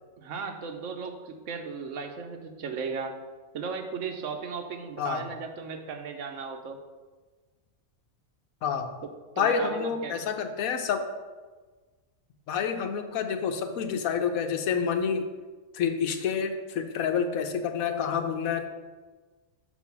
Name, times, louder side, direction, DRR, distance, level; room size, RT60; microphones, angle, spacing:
voice 1, 0.2-3.1 3.5-6.8 9.4-10.2, right 5 dB, 65° right, 5 dB, 1.1 m, -36 dB
voice 2, 9.4-11.1 12.5-15.3 15.7-18.7, left 6 dB, 85° left, 7 dB, 1.1 m, -28 dB
6.0 x 4.5 x 5.9 m, 1.3 s
omnidirectional pair, 1.4 m